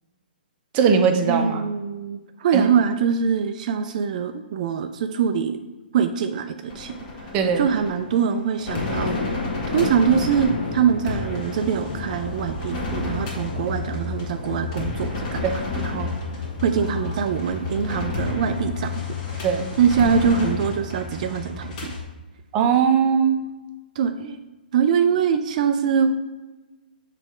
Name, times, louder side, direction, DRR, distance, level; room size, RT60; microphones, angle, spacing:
voice 1, 0.7-1.6 2.5-2.7 7.3-7.6 15.4-15.6 19.4-19.7 22.5-23.4, right 6 dB, 30° right, 5 dB, 0.7 m, -19 dB
voice 2, 1.3-5.6 5.9-7.3 7.6-15.5 15.7-16.1 16.6-19.0 19.3-19.5 19.8-21.9 24.0-24.4 24.7-26.1, right 7 dB, 50° right, 7 dB, 0.4 m, -23 dB
sound 1, 6.7-22.0, left 4 dB, 40° left, 1.7 m, -31 dB
sound 2, 8.7-21.4, left 2 dB, 70° left, 1.2 m, -35 dB
6.1 x 3.3 x 4.9 m, 1.1 s
hypercardioid pair, 140°, 5 cm